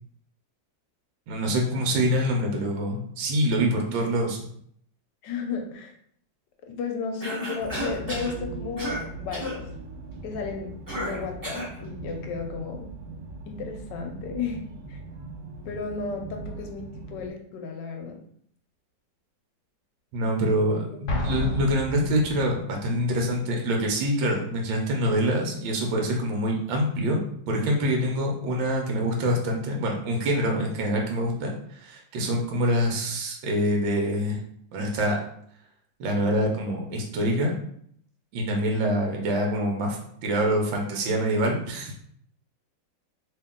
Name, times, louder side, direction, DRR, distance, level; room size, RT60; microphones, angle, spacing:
voice 1, 1.3-4.4 20.1-27.2 27.5-34.4 34.7-35.2 36.0-37.5 38.3-42.0, equal, 80° right, 1 dB, 1.4 m, -25 dB
voice 2, 5.2-5.9 6.7-9.7 10.2-10.7 11.0-12.9 13.5-14.6 14.9-15.0 15.7-18.2 21.5-21.6, left 5 dB, 75° left, 3 dB, 1.2 m, -34 dB
Cough, 7.2-8.4 8.8-9.0 9.3-9.6 10.9-11.7, equal, 15° right, 0.9 m, -32 dB
sound 1, 7.6-17.3, right 2 dB, 65° right, 1.0 m, -40 dB
Explosion, 21.1-22.7, left 1 dB, 55° left, 0.8 m, -30 dB
3.0 x 2.8 x 3.6 m, 0.65 s
omnidirectional pair, 2.1 m